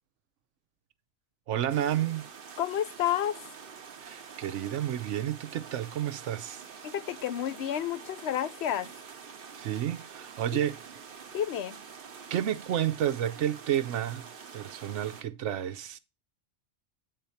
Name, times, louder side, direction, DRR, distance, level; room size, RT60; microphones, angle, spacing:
voice 1, 1.5-2.3 4.0-6.6 9.5-10.8 12.3-16.0, right 11 dB, 90° right, 1.0 m, -31 dB
sound 1, 1.7-15.2, right 6 dB, 55° right, 0.9 m, -47 dB
voice 2, 2.6-3.4 6.8-8.9 11.3-11.8, left 10 dB, 70° left, 0.8 m, -30 dB
8.2 x 4.0 x 5.6 m
omnidirectional pair, 1.2 m